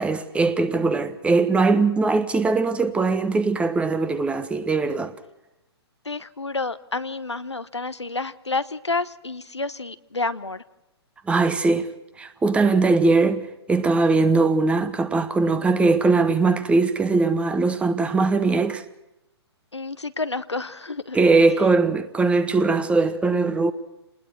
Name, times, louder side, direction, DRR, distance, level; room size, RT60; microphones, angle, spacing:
voice 1, 0.0-5.1 11.3-11.9 12.2-13.4 13.7-18.8 21.1-23.7, right 3 dB, 10° right, 1.2 m, -20 dB
voice 2, 6.0-10.6 19.7-21.2, left 3 dB, 85° left, 1.0 m, -29 dB
29.0 x 20.5 x 4.6 m
figure-of-eight pair, 125°, 14 cm